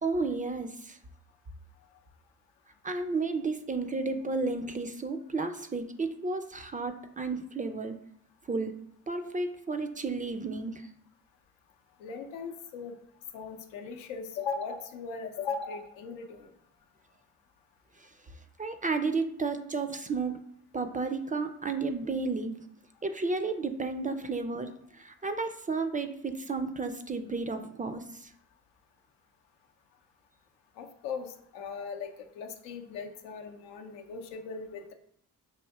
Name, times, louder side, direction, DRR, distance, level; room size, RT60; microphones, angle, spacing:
voice 1, 0.0-1.0 2.8-8.0 8.5-8.7 9.1-10.9 18.0-18.1 18.6-20.4 20.7-22.5 23.0-28.3, right 3 dB, 20° right, 8 dB, 0.3 m, -32 dB
voice 2, 12.0-12.9 13.3-16.5 30.8-34.9, left 5 dB, 85° left, 5 dB, 0.6 m, -38 dB
5.5 x 2.6 x 2.3 m, 0.69 s
hypercardioid pair, 45°, 42 cm